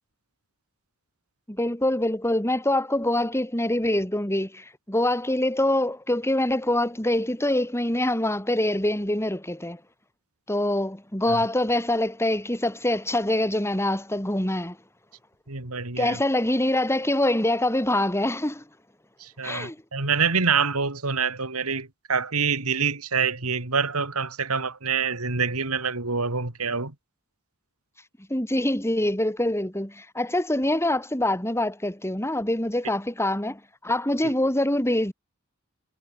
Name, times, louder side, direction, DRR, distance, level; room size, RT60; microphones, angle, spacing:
voice 1, 1.5-9.8 10.5-14.8 16.0-18.6 19.4-19.8 28.3-35.1, left 1 dB, 10° left, 6.0 m, -25 dB
voice 2, 15.5-16.2 19.2-26.9, right 5 dB, 80° right, 3.2 m, -26 dB
head